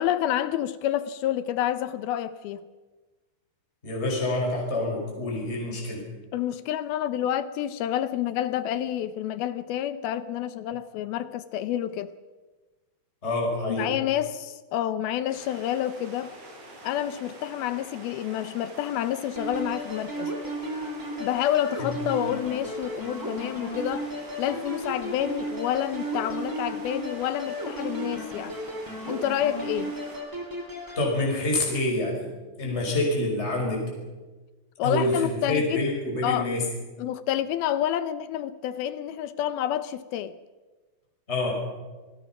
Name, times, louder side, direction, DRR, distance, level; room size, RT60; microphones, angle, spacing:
voice 1, 0.0-2.6 6.3-12.1 13.7-16.3 16.8-20.3 21.2-24.1 24.4-28.5 29.1-29.9 34.8-35.9 36.2-36.5 37.0-40.4, left 11 dB, 75° left, 2.4 m, -28 dB
voice 2, 3.8-6.1 13.2-13.9 21.8-22.0 31.0-32.3 32.6-33.9 34.8-36.6 41.3-41.6, left 2 dB, 15° left, 5.6 m, -27 dB
sound 1, 15.3-30.2, right 1 dB, 65° right, 6.5 m, -46 dB
sound 2, 19.4-31.1, right 1 dB, 5° right, 2.9 m, -35 dB
27.5 x 20.5 x 6.0 m
omnidirectional pair, 4.9 m